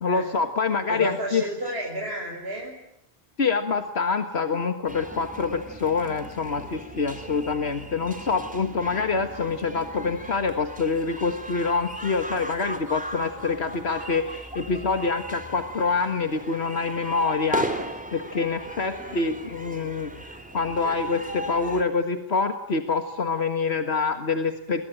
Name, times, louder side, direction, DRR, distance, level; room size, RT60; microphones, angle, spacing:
voice 1, 0.0-1.4 3.4-17.7 18.1-24.8, left 4 dB, 85° left, 7 dB, 2.0 m, -26 dB
voice 2, 0.9-2.8 18.9-19.3, right 1 dB, 75° right, -1 dB, 6.2 m, -32 dB
sound 1, 4.9-21.8, right 1 dB, 5° right, 3.3 m, -38 dB
29.0 x 22.5 x 9.0 m, 0.77 s
omnidirectional pair, 1.1 m